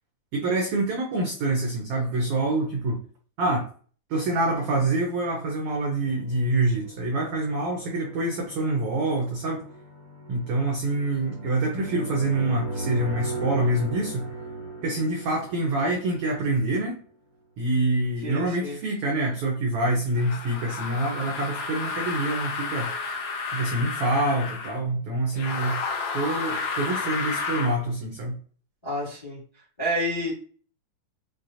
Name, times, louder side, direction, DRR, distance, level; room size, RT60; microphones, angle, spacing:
voice 1, 0.3-3.0 3.4-3.6 4.1-9.6 10.3-14.3 14.8-17.0 17.6-22.9 23.5-25.8 26.1-28.3, right 2 dB, 90° right, 1 dB, 1.2 m, -26 dB
sound 1, 6.0-16.8, right 2 dB, 65° right, 0.5 m, -37 dB
voice 2, 18.2-18.8 28.8-29.4 29.8-30.3, equal, 40° left, -6 dB, 0.3 m, -29 dB
sound 2, 20.1-24.8 25.3-27.8, left 4 dB, 80° left, 1.3 m, -31 dB
6.1 x 2.2 x 2.6 m, 0.43 s
omnidirectional pair, 3.5 m